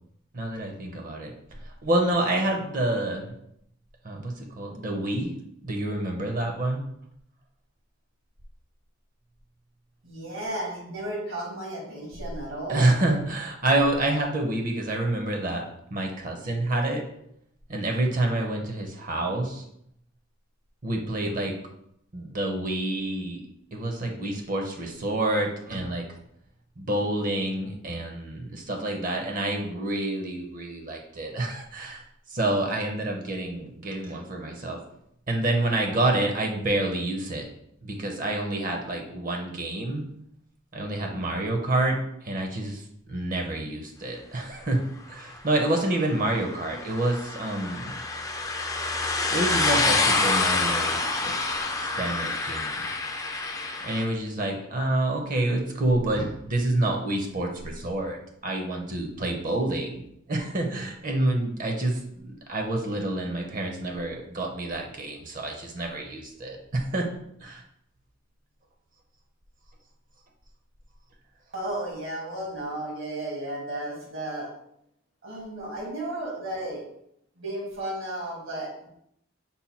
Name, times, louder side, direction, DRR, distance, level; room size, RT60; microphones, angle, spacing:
voice 1, 0.3-1.3 1.6-3.3 4.0-5.3 5.6-6.8 12.7-15.6 15.9-17.0 17.7-19.6 20.8-21.5 22.1-23.4 23.7-26.0 26.8-34.8 35.3-37.5 37.8-40.0 40.7-44.8 45.1-48.0 49.3-51.3 51.8-52.9 53.8-60.0 60.3-67.1 67.4-67.6, right 1 dB, 45° right, 2 dB, 0.6 m, -28 dB
voice 2, 10.0-12.9 71.5-74.5 75.2-76.8 77.4-78.9, right 1 dB, 80° right, -2 dB, 1.7 m, -34 dB
sound 1, 45.9-54.0, left 3 dB, 15° left, 0.4 m, -27 dB
5.5 x 2.2 x 4.2 m, 0.74 s
head